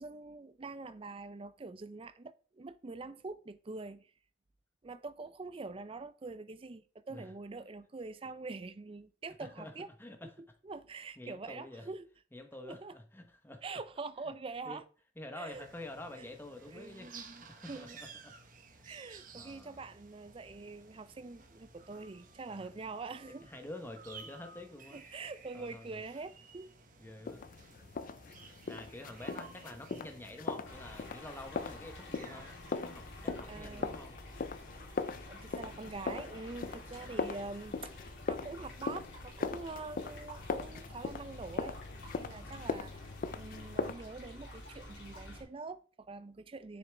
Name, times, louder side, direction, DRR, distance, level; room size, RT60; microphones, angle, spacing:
voice 1, 0.0-4.1 4.8-9.9 10.4-12.1 12.6-12.9 13.6-14.8 15.3-15.7 16.2-16.3 16.7-18.0 18.8-23.5 24.9-26.7 33.5-34.0 35.3-41.8 42.1-46.8, right 3 dB, 25° right, 0.4 m, -45 dB
voice 2, 9.4-9.7 10.0-10.3 11.2-11.9 12.3-13.6 14.7-14.8 15.2-17.1 17.4-18.3 18.8-19.0 19.3-19.8 22.5-22.6 23.4-25.0 25.5-26.0 27.0-27.4 28.7-32.5 32.8-34.1 37.0-37.7 42.3-42.7, left 1 dB, 10° left, 0.9 m, -48 dB
sound 1, 15.5-32.8, right 5 dB, 45° right, 1.0 m, -55 dB
sound 2, 27.3-43.9, left 4 dB, 45° left, 0.4 m, -40 dB
sound 3, 30.6-45.4, left 1 dB, 65° left, 3.1 m, -50 dB
7.0 x 6.5 x 3.4 m
head